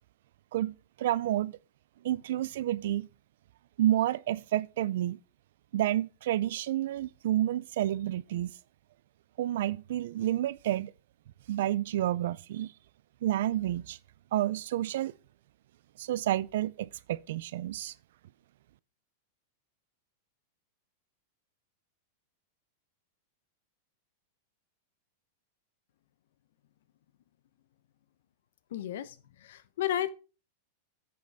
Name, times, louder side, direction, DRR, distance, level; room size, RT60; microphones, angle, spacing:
voice 1, 0.5-1.5 2.0-3.1 3.8-5.2 5.7-8.5 9.4-10.9 11.5-12.7 13.2-14.0 14.3-15.1 16.0-17.9, right 13 dB, 70° right, 0.4 m, -30 dB
voice 2, 28.7-29.1 29.4-30.1, left 11 dB, 75° left, 0.8 m, -32 dB
9.5 x 6.5 x 3.5 m
supercardioid pair, 135°, 0 cm